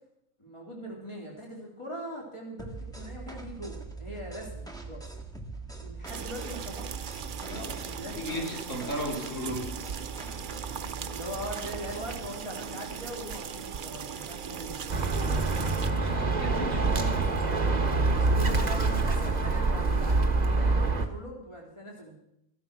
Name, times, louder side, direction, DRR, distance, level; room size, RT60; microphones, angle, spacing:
voice 1, 0.4-5.1 5.8-7.1 7.5-8.4 11.1-14.8 18.1-22.1, equal, 20° left, -2 dB, 3.8 m, -41 dB
sound 1, 2.6-12.3, right 3 dB, 5° left, 1.6 m, -42 dB
sound 2, 6.1-15.9, right 7 dB, 50° right, 0.7 m, -39 dB
voice 2, 7.5-9.7 15.1-15.5 15.9-17.3, equal, 60° left, -1 dB, 3.3 m, -36 dB
Bird, 14.9-21.1, right 3 dB, 30° right, 1.3 m, -25 dB
15.0 x 12.0 x 6.1 m, 0.80 s
omnidirectional pair, 1.5 m